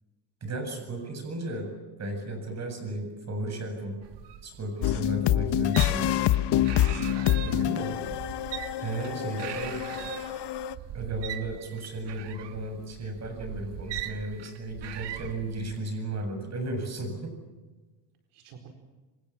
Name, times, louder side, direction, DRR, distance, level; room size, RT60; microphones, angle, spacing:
voice 1, 0.4-1.7 2.0-4.0 4.4-6.1 7.4-7.9 8.8-9.8 10.9-17.4, right 2 dB, 30° right, 6 dB, 7.7 m, -34 dB
sound 1, 4.0-15.8, right 11 dB, 60° right, 1.9 m, -40 dB
sound 2, 4.8-10.7, left 12 dB, 55° left, 1.3 m, -27 dB
voice 2, 7.1-8.1 9.1-10.1 18.3-18.7, right 4 dB, 75° right, 5 dB, 4.6 m, -45 dB
27.5 x 26.0 x 7.5 m, 1.2 s
cardioid pair, 130°, 49 cm